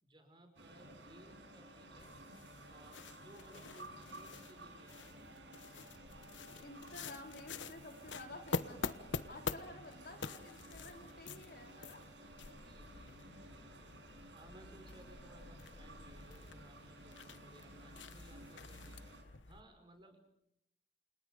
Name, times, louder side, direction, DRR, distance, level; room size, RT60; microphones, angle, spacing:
voice 1, 0.0-2.2 2.7-5.2 9.3-9.6 12.5-13.9 14.3-19.0 19.4-20.2, right 1 dB, 25° right, 5 dB, 5.5 m, -61 dB
sound 1, 0.6-19.2, right 1 dB, 85° right, 6.9 m, -55 dB
sound 2, 2.0-19.6, left 4 dB, 90° left, 1.2 m, -47 dB
voice 2, 6.6-8.9 9.3-12.0, left 2 dB, 55° left, 3 dB, 4.3 m, -52 dB
29.5 x 28.5 x 5.2 m, 0.79 s
head